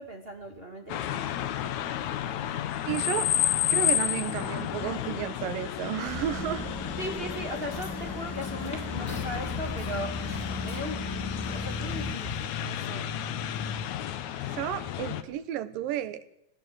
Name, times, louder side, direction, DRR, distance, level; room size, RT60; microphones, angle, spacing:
voice 1, 0.0-1.8 3.0-3.1 7.0-10.1 10.6-11.1 11.5-12.3 12.6-13.1, equal, 25° right, 3 dB, 1.6 m, -38 dB
sound 1, 0.9-15.2, left 11 dB, 70° left, 2.1 m, -32 dB
voice 2, 2.8-3.3 3.7-6.7 14.4-16.4, right 11 dB, 80° right, 12 dB, 2.8 m, -32 dB
sound 2, 6.1-12.1, equal, 5° left, 1.2 m, -37 dB
sound 3, 7.5-12.9, left 1 dB, 20° left, 4.4 m, -48 dB
19.0 x 18.0 x 7.7 m, 0.80 s
omnidirectional pair, 4.0 m